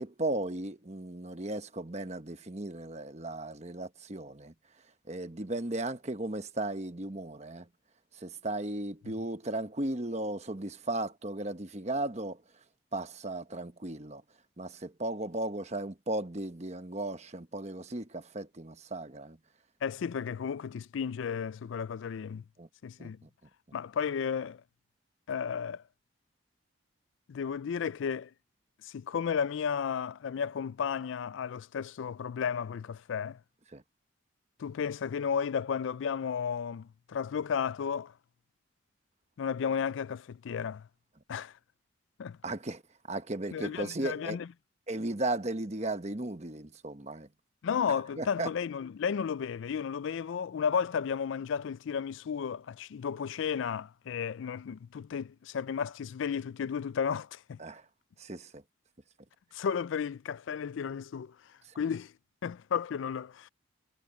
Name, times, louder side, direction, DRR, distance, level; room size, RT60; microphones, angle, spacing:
voice 1, 0.0-4.5 5.1-7.7 8.1-12.4 12.9-14.2 14.6-19.4 22.6-22.7 23.0-23.1 33.7-33.8 42.4-42.8 43.1-44.4 44.9-47.3 48.2-48.5 57.6-57.8 58.2-58.6, right 2 dB, 35° right, 1.1 m, -36 dB
voice 2, 19.8-22.4 22.8-23.2 23.7-24.6 25.3-25.8 27.3-28.3 28.8-33.4 34.6-38.1 39.4-40.9 41.3-41.5 42.2-42.4 43.5-44.5 47.6-57.6 59.5-61.4 61.8-62.1 62.4-63.5, left 7 dB, 70° left, 0.3 m, -33 dB
head